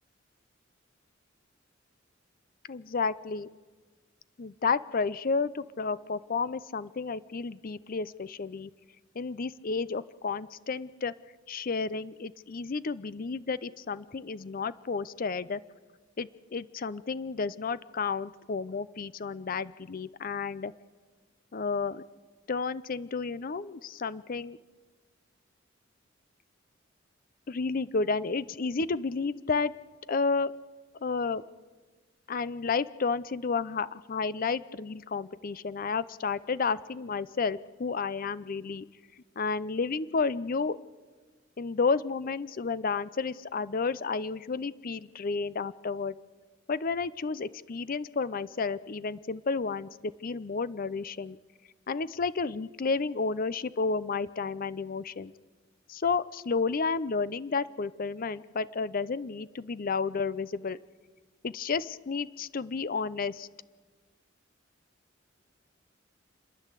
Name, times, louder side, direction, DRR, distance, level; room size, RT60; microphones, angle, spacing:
voice 1, 2.7-3.5 4.4-8.7 9.2-11.1 11.5-15.6 16.2-20.7 21.5-22.0 22.5-24.6 27.5-29.7 30.1-30.5 31.0-31.4 32.3-38.9 39.4-40.8 41.6-46.1 46.7-51.4 51.9-55.3 55.9-60.8 61.4-63.5, left 4 dB, 45° left, 17 dB, 0.5 m, -31 dB
30.0 x 10.5 x 8.2 m, 1.4 s
head